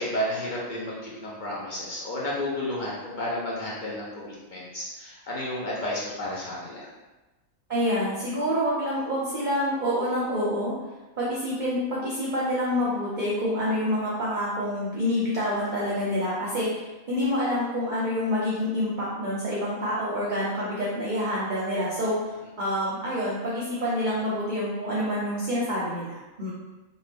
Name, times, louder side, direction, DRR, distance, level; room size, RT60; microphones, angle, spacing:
voice 1, 0.0-6.9, left 1 dB, 55° left, -6 dB, 0.5 m, -32 dB
voice 2, 7.7-10.7 11.1-22.2 22.6-26.5, equal, 50° right, -7 dB, 0.6 m, -27 dB
2.7 x 2.2 x 3.3 m, 1.1 s
omnidirectional pair, 1.4 m